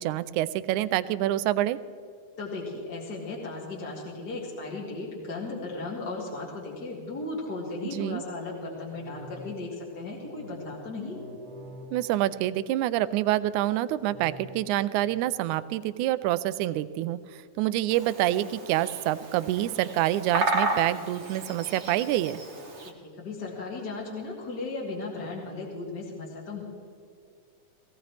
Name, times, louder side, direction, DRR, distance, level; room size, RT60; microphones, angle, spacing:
voice 1, 0.0-1.8 7.8-8.2 11.9-22.4, right 14 dB, 80° right, 14 dB, 1.9 m, -27 dB
voice 2, 2.4-11.2 22.8-26.6, left 3 dB, 35° left, -3 dB, 2.2 m, -36 dB
sound 1, 8.8-13.1 14.0-15.2, left 1 dB, 60° right, 2.9 m, -47 dB
Bird vocalization bird call bird song, 17.9-22.9, right 2 dB, 40° right, 0.9 m, -33 dB
18.0 x 17.0 x 3.4 m, 2.3 s
omnidirectional pair, 3.6 m